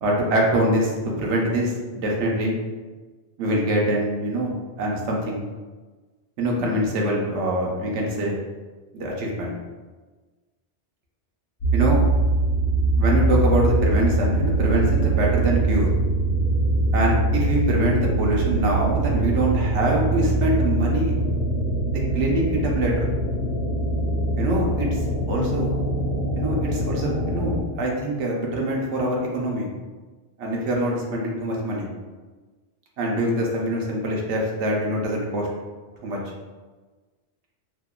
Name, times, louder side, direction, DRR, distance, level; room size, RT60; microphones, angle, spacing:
voice 1, 0.0-0.9 1.2-2.6 3.4-5.4 6.4-8.4 8.9-9.6 11.7-12.0 13.0-15.9 16.9-21.1 21.9-23.1 24.4-25.0 25.3-25.7 26.4-29.7 30.4-31.9 33.0-35.5 36.0-36.2, right 1 dB, 80° right, -2 dB, 0.9 m, -24 dB
sound 1, 11.6-27.6, right 2 dB, 65° left, 0.8 m, -23 dB
2.7 x 2.2 x 2.2 m, 1.3 s
omnidirectional pair, 1.2 m